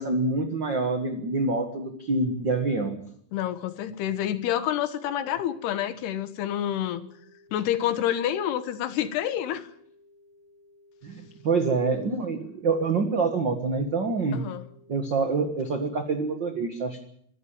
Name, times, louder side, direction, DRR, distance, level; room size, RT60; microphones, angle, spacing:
voice 1, 0.0-3.0 11.0-14.5 14.9-17.0, right 3 dB, 50° right, 1.3 m, -26 dB
voice 2, 3.3-7.1 7.5-9.7 14.3-14.7, left 11 dB, 90° left, 3.4 m, -28 dB
sound 1, 5.1-15.1, left 2 dB, 75° right, 9.3 m, -58 dB
24.5 x 13.5 x 8.9 m
omnidirectional pair, 4.5 m